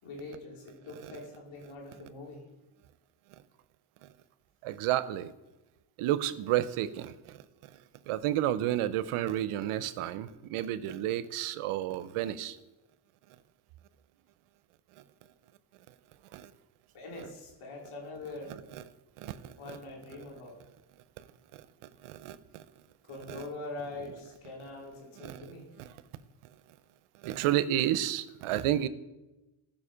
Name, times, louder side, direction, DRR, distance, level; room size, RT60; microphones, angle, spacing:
voice 1, 0.0-2.4 16.9-18.6 19.6-20.6 23.1-25.7, left 2 dB, 80° left, -1 dB, 3.6 m, -43 dB
voice 2, 4.6-5.3 6.0-7.4 8.1-12.6 16.3-16.5 18.7-18.8 19.2-19.5 21.5-21.6 22.0-22.6 23.3-23.4 25.2-25.5 25.8-25.9 27.2-28.9, right 12 dB, 85° right, 15 dB, 0.7 m, -31 dB
14.5 x 5.8 x 5.0 m, 1.0 s
supercardioid pair, 65°, 50 cm